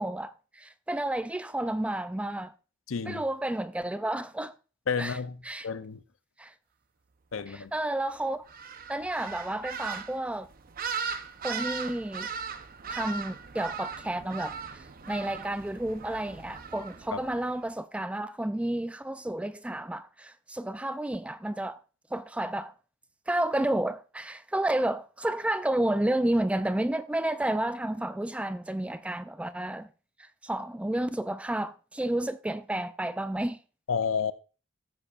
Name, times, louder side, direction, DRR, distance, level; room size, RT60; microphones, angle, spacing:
voice 1, 0.0-2.5 3.1-4.5 5.0-5.2 5.4-5.7 6.4-6.5 7.5-8.4 8.9-10.5 11.4-12.3 12.9-21.8 22.1-22.7 23.3-29.9 30.2-33.6, right 1 dB, 5° right, 0.3 m, -31 dB
voice 2, 2.9-3.2 4.9-5.4 5.6-6.0 7.3-7.7 17.1-17.2 33.9-34.3, left 6 dB, 70° left, 0.6 m, -30 dB
sound 1, 8.5-17.6, right 6 dB, 45° right, 0.7 m, -38 dB
15.0 x 7.2 x 2.4 m
head